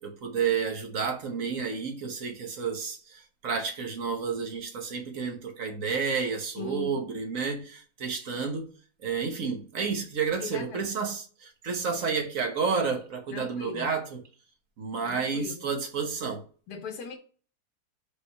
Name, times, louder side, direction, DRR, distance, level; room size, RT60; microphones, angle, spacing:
voice 1, 0.0-8.7 9.0-14.2 14.8-16.4, right 5 dB, 60° right, 1.4 m, -30 dB
voice 2, 6.6-7.1 10.4-10.9 13.3-14.0 15.0-15.7 16.7-17.2, left 4 dB, 75° left, 1.4 m, -39 dB
5.2 x 3.2 x 5.6 m
omnidirectional pair, 1.7 m